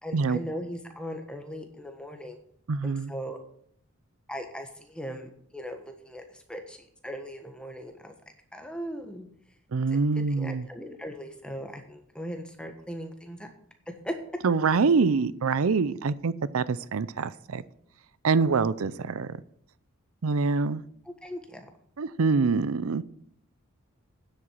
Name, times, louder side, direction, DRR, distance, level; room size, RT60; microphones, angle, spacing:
voice 1, 0.0-2.4 2.8-3.4 4.3-8.1 8.5-9.3 10.4-13.5 14.0-14.1 21.0-21.7, equal, 5° left, 5 dB, 1.3 m, -39 dB
voice 2, 2.7-3.1 9.7-10.7 14.4-17.6 18.2-19.4 20.2-20.8 22.0-23.0, right 4 dB, 75° right, 17 dB, 0.5 m, -25 dB
9.8 x 8.0 x 7.3 m, 0.66 s
head